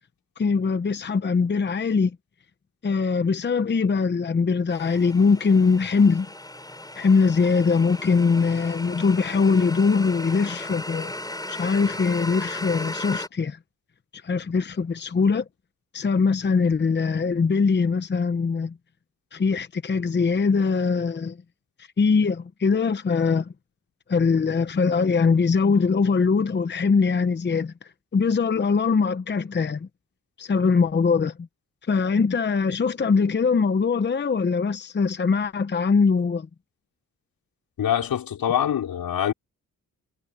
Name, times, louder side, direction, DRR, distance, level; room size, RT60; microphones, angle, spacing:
voice 1, 0.4-2.2 2.8-6.3 7.0-11.1 11.5-13.6 14.2-15.4 15.9-18.8 19.3-21.4 22.0-23.5 24.1-27.7 28.1-29.9 30.4-31.3 31.9-36.5, left 5 dB, 30° left, 0.9 m, -22 dB
sound 1, 4.7-13.3, left 1 dB, 10° left, 6.2 m, -36 dB
voice 2, 37.8-39.3, left 10 dB, 90° left, 4.8 m, -24 dB
cardioid pair, 105°, 34 cm